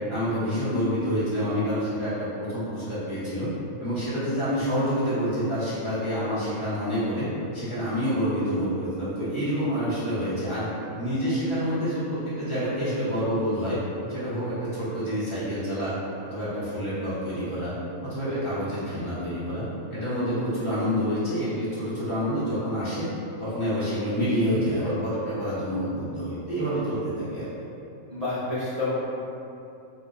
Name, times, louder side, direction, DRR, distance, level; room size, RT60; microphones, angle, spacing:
voice 1, 0.1-3.5 3.8-10.7 11.0-13.8 14.1-15.9 16.2-17.7 18.0-19.6 19.9-23.1 23.4-27.5, equal, 25° left, -13 dB, 0.8 m, -27 dB
voice 2, 28.1-28.9, left 2 dB, 50° right, -11 dB, 0.4 m, -28 dB
2.9 x 2.1 x 3.7 m, 2.7 s
omnidirectional pair, 1.5 m